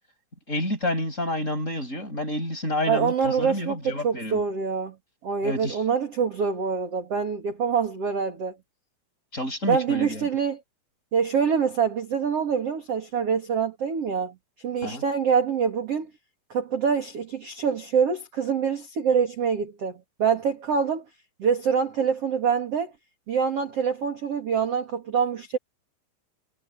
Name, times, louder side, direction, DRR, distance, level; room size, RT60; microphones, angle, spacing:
voice 1, 0.5-4.4 5.4-5.8 9.3-10.3 14.8-15.0, left 1 dB, 15° left, 7.8 m, -29 dB
voice 2, 2.9-4.9 5.2-8.6 9.7-10.6 11.1-14.3 14.6-16.1 16.5-21.0 21.4-22.9 23.3-25.6, right 6 dB, 40° right, 2.7 m, -25 dB
omnidirectional pair, 5.3 m